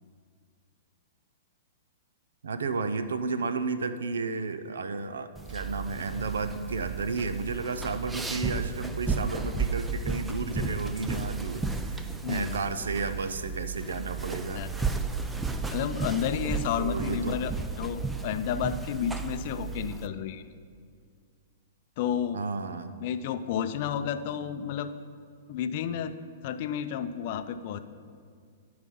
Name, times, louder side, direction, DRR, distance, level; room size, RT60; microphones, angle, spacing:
voice 1, 2.4-14.6 16.8-17.4 22.3-22.9, right 4 dB, 90° right, 11 dB, 0.5 m, -32 dB
sound 1, 5.4-20.1, right 4 dB, 10° right, 0.4 m, -33 dB
voice 2, 12.2-12.6 14.5-14.8 15.7-17.5 17.8-20.5 22.0-22.4 23.0-25.0 25.5-26.2 26.4-27.8, left 8 dB, 50° left, 10 dB, 0.5 m, -31 dB
11.5 x 4.8 x 5.4 m, 2.1 s
hypercardioid pair, 135°, 0 cm